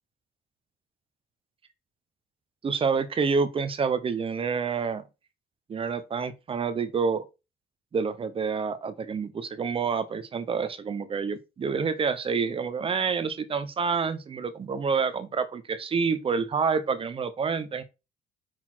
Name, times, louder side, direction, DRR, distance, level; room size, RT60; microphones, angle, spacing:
voice 1, 2.6-5.0 5.7-7.2 7.9-17.8, right 5 dB, 35° right, 0.9 m, -28 dB
6.1 x 4.1 x 4.4 m
cardioid pair, 110°, 17 cm